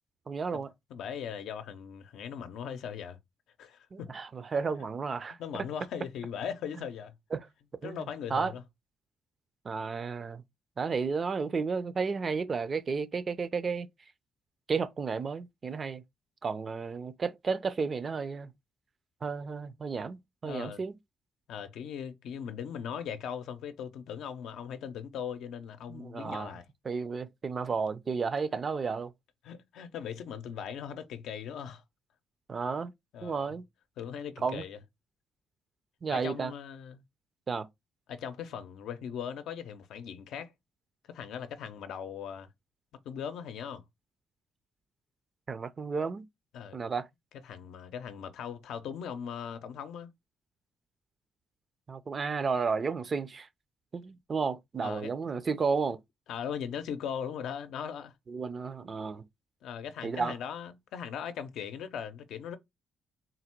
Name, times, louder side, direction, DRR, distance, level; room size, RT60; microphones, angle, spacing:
voice 1, 0.3-0.7 3.9-5.4 7.3-7.5 7.8-8.0 8.3-8.5 9.6-10.4 10.8-13.9 14.7-16.0 16.4-18.5 19.2-21.0 25.9-26.6 26.8-29.1 32.5-32.9 33.2-33.6 34.4-34.6 36.0-36.5 37.5-37.7 45.5-46.3 46.7-47.1 51.9-53.5 53.9-56.0 58.3-59.2 60.0-60.3, right 5 dB, 40° right, 0.5 m, -32 dB
voice 2, 0.9-3.2 3.6-4.1 5.4-7.1 7.8-8.6 20.4-20.8 21.5-26.6 29.4-31.8 33.1-33.5 34.0-34.8 36.1-37.0 38.1-40.5 41.1-42.5 43.1-43.8 46.5-46.8 47.4-50.1 54.8-55.1 56.3-58.1 59.6-62.6, left 8 dB, 80° left, 0.5 m, -39 dB
3.9 x 2.1 x 4.4 m
cardioid pair, 90°, 0 cm